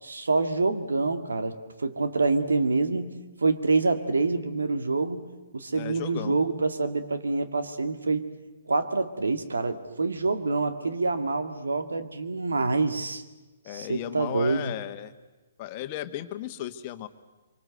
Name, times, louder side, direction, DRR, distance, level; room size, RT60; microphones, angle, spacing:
voice 1, 0.0-3.1 3.4-5.3 5.5-8.3 8.7-13.2 13.7-14.7, right 3 dB, 80° right, 10 dB, 2.1 m, -26 dB
voice 2, 5.7-6.4 13.6-15.1 15.6-17.1, left 13 dB, 35° left, 9 dB, 1.5 m, -35 dB
25.5 x 24.5 x 8.0 m, 1.1 s
figure-of-eight pair, 125°, 0 cm